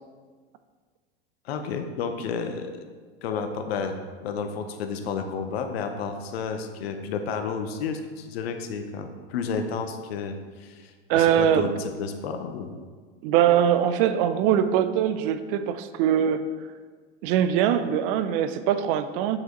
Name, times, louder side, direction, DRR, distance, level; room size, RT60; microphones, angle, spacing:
voice 1, 1.4-2.7 3.2-12.7, left 5 dB, 75° left, 7 dB, 0.8 m, -31 dB
voice 2, 11.1-11.7 13.2-16.4 17.2-19.4, right 9 dB, 60° right, 11 dB, 0.6 m, -22 dB
7.4 x 5.0 x 3.9 m, 1.5 s
hypercardioid pair, 90°, 31 cm